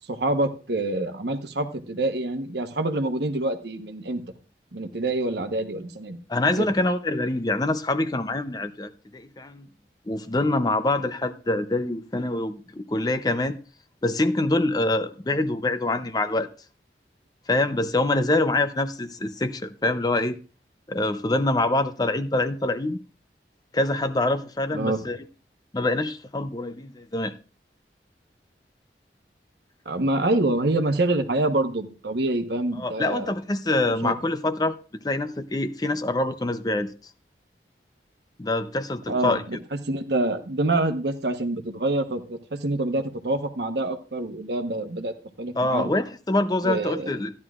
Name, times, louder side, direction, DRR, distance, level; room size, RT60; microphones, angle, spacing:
voice 1, 0.1-4.2 4.7-6.2 6.6-6.7 24.7-25.1 29.8-33.3 33.9-34.1 39.1-39.6 39.9-45.9 46.6-47.1, right 2 dB, 70° right, 1.1 m, -26 dB
voice 2, 6.3-9.7 10.1-13.6 14.0-16.5 17.5-20.4 20.9-23.0 23.7-25.2 25.7-27.3 32.8-34.8 35.0-36.9 38.4-39.4 45.6-47.3, left 2 dB, 20° left, 0.5 m, -25 dB
14.5 x 11.0 x 2.4 m
head